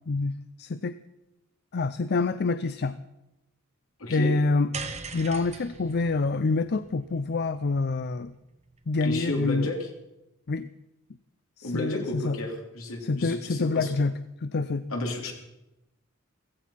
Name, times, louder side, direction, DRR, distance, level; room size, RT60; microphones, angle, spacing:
voice 1, 0.1-1.0 1.7-3.0 4.1-4.7 5.1-8.3 8.9-9.7 10.5-10.7 11.6-12.4 13.0-14.1 14.4-14.9, left 3 dB, 50° left, 13 dB, 0.5 m, -26 dB
voice 2, 4.0-4.3 9.0-9.9 11.6-13.9 14.9-15.3, left 2 dB, 70° left, 2 dB, 3.4 m, -32 dB
sound 1, 4.7-9.1, right 4 dB, 35° right, 1.4 m, -42 dB
16.0 x 15.5 x 5.8 m, 0.94 s
head